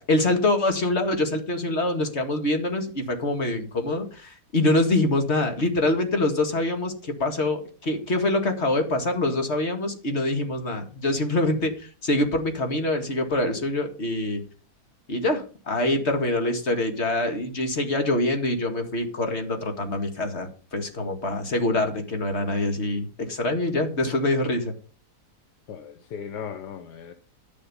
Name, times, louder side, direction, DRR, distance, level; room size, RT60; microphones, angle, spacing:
voice 1, 0.0-14.4 15.1-24.7, left 2 dB, 40° left, 5 dB, 2.3 m, -25 dB
voice 2, 25.7-27.1, left 7 dB, 85° left, 9 dB, 1.5 m, -37 dB
11.5 x 7.2 x 5.5 m, 0.38 s
omnidirectional pair, 1.8 m